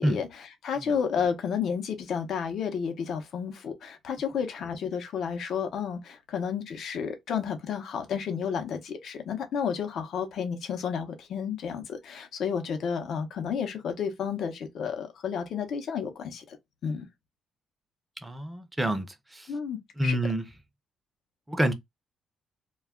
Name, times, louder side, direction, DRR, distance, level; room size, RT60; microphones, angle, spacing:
voice 1, 0.0-16.6 16.8-17.0 19.5-20.2, left 7 dB, 70° left, 0.7 m, -31 dB
voice 2, 18.2-19.5 20.0-20.5 21.5-21.7, right 1 dB, 10° right, 0.5 m, -28 dB
2.3 x 2.1 x 3.5 m
cardioid pair, 90°, 0 cm